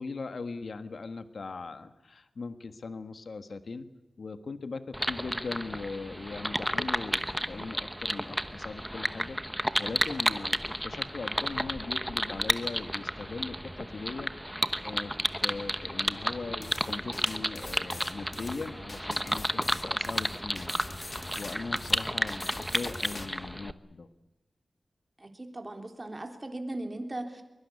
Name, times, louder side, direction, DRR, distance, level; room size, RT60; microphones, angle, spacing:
voice 1, 0.0-3.9 4.2-14.3 14.8-20.8 21.1-24.1, left 4 dB, 65° left, 10 dB, 1.4 m, -40 dB
sound 1, 4.9-23.7, equal, ahead, 1.0 m, -32 dB
sound 2, 16.6-23.3, left 2 dB, 35° left, 2.4 m, -43 dB
voice 2, 25.2-27.4, right 1 dB, 25° right, 4 dB, 3.5 m, -38 dB
23.0 x 22.5 x 8.4 m, 1.0 s
wide cardioid pair, 105°, 0 cm